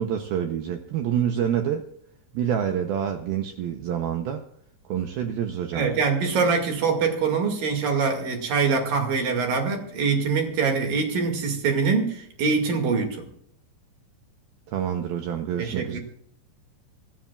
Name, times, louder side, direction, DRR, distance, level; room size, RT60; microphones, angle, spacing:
voice 1, 0.0-1.9 2.3-4.4 4.9-5.9 14.7-16.0, right 9 dB, 80° right, 6 dB, 2.2 m, -27 dB
voice 2, 5.7-13.3 15.6-16.0, right 5 dB, 55° right, 3 dB, 3.5 m, -24 dB
26.5 x 13.0 x 2.4 m, 0.68 s
omnidirectional pair, 5.3 m